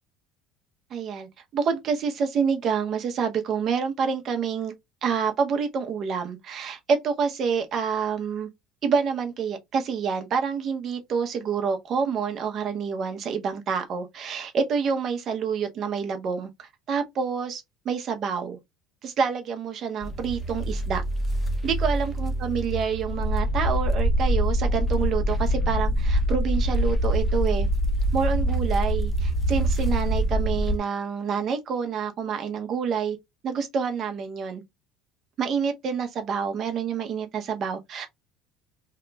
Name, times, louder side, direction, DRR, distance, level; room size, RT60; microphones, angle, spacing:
voice 1, 0.9-4.7 5.0-8.5 8.8-18.6 19.0-21.0 21.6-27.7 28.1-33.2 33.4-34.6 35.4-38.1, right 6 dB, 35° right, 0.7 m, -27 dB
sound 1, 20.0-30.8, equal, 15° left, 0.6 m, -25 dB
2.8 x 2.3 x 3.8 m
cardioid pair, 165°, 0 cm